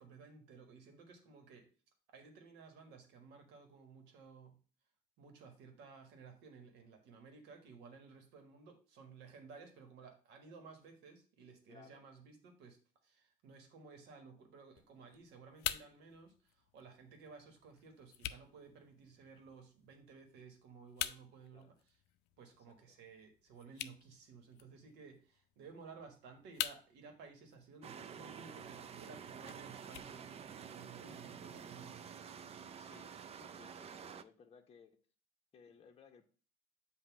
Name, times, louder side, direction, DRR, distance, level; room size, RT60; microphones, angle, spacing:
voice 1, 0.0-1.7 2.1-4.6 5.2-21.9 22.4-32.2 35.7-35.8, right 4 dB, 90° right, 5 dB, 1.5 m, -56 dB
voice 2, 11.7-12.0 21.5-21.7 22.9-23.0 32.8-35.0 35.5-36.2, left 6 dB, 35° left, 2 dB, 0.9 m, -61 dB
sound 1, 14.7-30.8, left 13 dB, 90° left, 0.4 m, -48 dB
sound 2, 27.8-34.2, right 7 dB, 35° right, 0.4 m, -49 dB
7.2 x 2.7 x 5.8 m, 0.38 s
cardioid pair, 110°, 17 cm